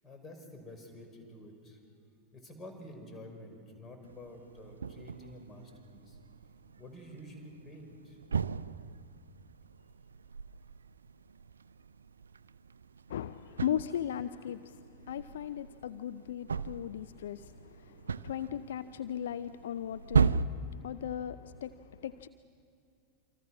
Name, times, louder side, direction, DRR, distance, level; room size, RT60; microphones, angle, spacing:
voice 1, 0.0-1.8 2.3-6.2 6.8-8.2, left 1 dB, 20° left, 4 dB, 6.1 m, -49 dB
sound 1, 4.0-20.4, right 6 dB, 70° right, 0.5 m, -37 dB
voice 2, 13.1-14.8 15.1-20.4 20.8-21.7 22.0-22.3, left 10 dB, 60° left, 13 dB, 0.5 m, -37 dB
28.0 x 26.0 x 6.3 m, 2.5 s
figure-of-eight pair, 90°, 0 cm